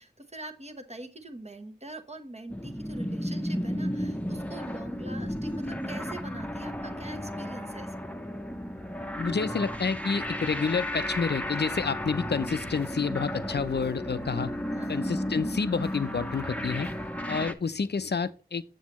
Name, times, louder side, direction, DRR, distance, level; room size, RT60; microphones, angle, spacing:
voice 1, 0.0-8.1 14.7-15.1, right 1 dB, 40° right, 0.9 m, -43 dB
sound 1, 2.5-17.5, equal, 10° left, 0.6 m, -33 dB
voice 2, 9.2-14.5 14.9-16.9 17.3-18.6, left 5 dB, 90° left, 0.4 m, -29 dB
sound 2, 12.1-17.1, right 6 dB, 75° right, 0.6 m, -50 dB
7.4 x 7.1 x 3.0 m
wide cardioid pair, 40°, 17 cm